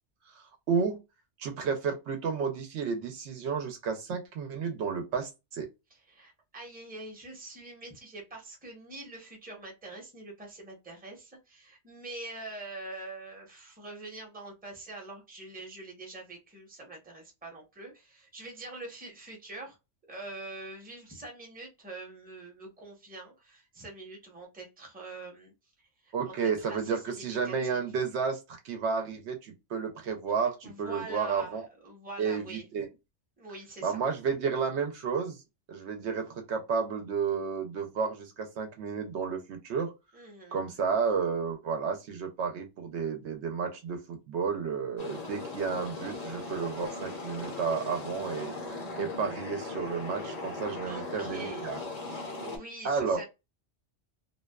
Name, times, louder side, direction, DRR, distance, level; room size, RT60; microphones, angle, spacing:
voice 1, 0.3-1.0 1.4-5.7 26.1-31.6 32.2-32.9 33.8-35.4 35.7-39.9 40.5-48.5 49.0-51.8 52.8-53.2, right 5 dB, 70° right, 0.8 m, -32 dB
voice 2, 5.9-19.8 20.1-25.5 26.0-27.8 30.6-32.7 33.4-34.0 40.1-40.6 50.8-51.7 52.0-53.2, right 2 dB, 10° right, 0.7 m, -44 dB
sound 1, 45.0-52.6, left 3 dB, 45° left, 0.6 m, -39 dB
2.5 x 2.1 x 2.2 m
omnidirectional pair, 1.2 m